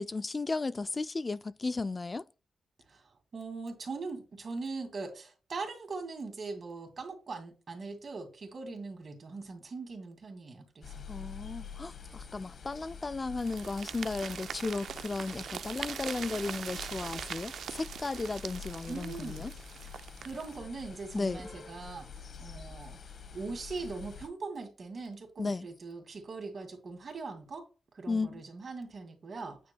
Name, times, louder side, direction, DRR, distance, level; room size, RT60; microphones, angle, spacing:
voice 1, 0.0-2.3 11.1-19.5 21.1-21.4 25.4-25.7 28.1-28.4, left 3 dB, 35° left, 0.3 m, -35 dB
voice 2, 2.9-11.0 18.9-19.5 20.2-23.0 23.3-27.7 27.9-29.6, right 3 dB, 55° right, 2.4 m, -41 dB
sound 1, 10.8-24.3, left 6 dB, 65° left, 1.1 m, -47 dB
sound 2, 13.4-20.6, right 8 dB, 75° right, 0.3 m, -42 dB
9.2 x 5.1 x 2.3 m
cardioid pair, 70°, 0 cm